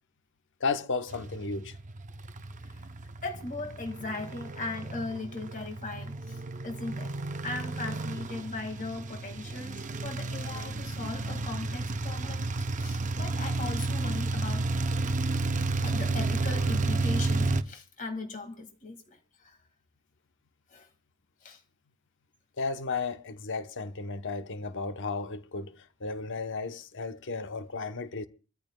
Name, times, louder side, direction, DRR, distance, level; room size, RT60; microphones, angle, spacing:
voice 1, 0.6-1.8 22.6-28.3, left 4 dB, 55° left, 0.9 m, -34 dB
sound 1, 1.1-17.6, right 3 dB, 35° right, 0.7 m, -32 dB
voice 2, 3.2-7.2 7.4-14.7 15.8-19.6 20.7-20.9 21.4-21.6, left 3 dB, 35° left, 2.0 m, -38 dB
26.0 x 14.0 x 2.3 m
head